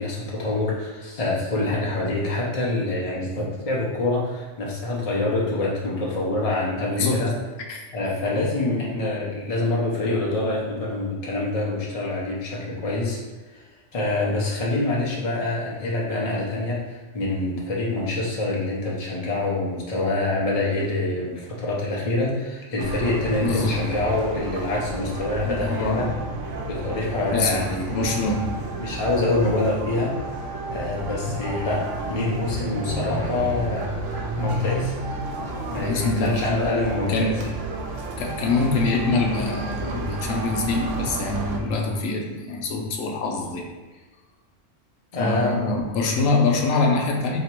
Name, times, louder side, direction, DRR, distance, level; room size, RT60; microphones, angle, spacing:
voice 1, 0.0-7.3 7.9-13.2 13.5-26.1 26.7-28.2 28.8-30.2 30.7-34.0 34.4-34.9 35.7-37.3 45.1-45.8, left 2 dB, 35° left, -4 dB, 0.8 m, -26 dB
voice 2, 7.0-7.3 7.7-7.9 23.4-23.9 25.4-26.1 27.3-28.6 35.8-36.6 37.1-37.5 38.2-43.7 45.2-47.4, left 3 dB, 85° left, 1 dB, 1.0 m, -24 dB
sound 1, 22.8-41.6, right 2 dB, 75° right, 0.9 m, -31 dB
2.9 x 2.9 x 4.4 m, 1.3 s
omnidirectional pair, 1.3 m